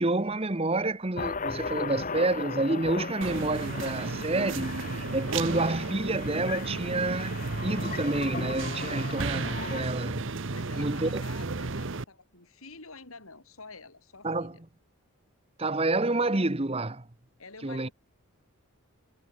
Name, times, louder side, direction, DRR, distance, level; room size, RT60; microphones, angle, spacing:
voice 1, 0.0-10.3 10.7-11.2 14.2-14.6 15.6-17.1 17.6-17.9, right 2 dB, 25° right, 1.1 m, -29 dB
sound 1, 1.2-9.9, left 4 dB, 35° left, 1.5 m, -37 dB
sound 2, 3.2-12.0, right 3 dB, 55° right, 1.0 m, -34 dB
Acoustic guitar, 4.4-7.4, right 1 dB, 75° right, 2.7 m, -45 dB
voice 2, 10.5-14.6 17.4-17.9, left 3 dB, 75° left, 5.5 m, -48 dB
head